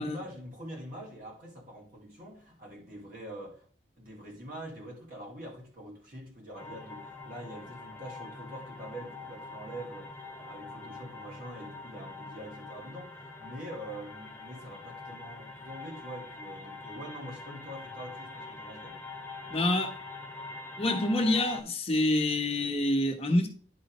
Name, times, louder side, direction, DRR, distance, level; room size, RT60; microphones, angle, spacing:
voice 1, 0.0-3.7 4.0-19.0, right 1 dB, 50° right, 2.1 m, -44 dB
sound 1, 6.6-21.6, left 3 dB, 10° left, 1.3 m, -44 dB
voice 2, 19.5-19.9 20.8-23.5, left 1 dB, 35° left, 1.1 m, -27 dB
10.5 x 5.0 x 3.0 m
head